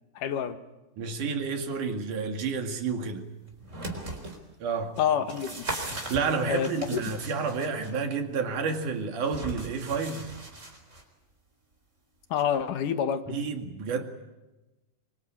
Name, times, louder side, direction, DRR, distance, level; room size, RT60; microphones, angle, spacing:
voice 1, 0.1-0.6 5.0-5.7 6.4-7.0 12.3-13.2, left 8 dB, 75° left, 2.9 m, -28 dB
voice 2, 1.0-3.3 4.6-5.0 6.1-10.4 13.3-14.0, right 5 dB, 70° right, 3.6 m, -30 dB
sound 1, 3.5-4.4 5.0-7.9 9.2-11.0 12.4-12.5, right 2 dB, 20° right, 4.1 m, -38 dB
24.5 x 24.5 x 8.9 m
omnidirectional pair, 3.7 m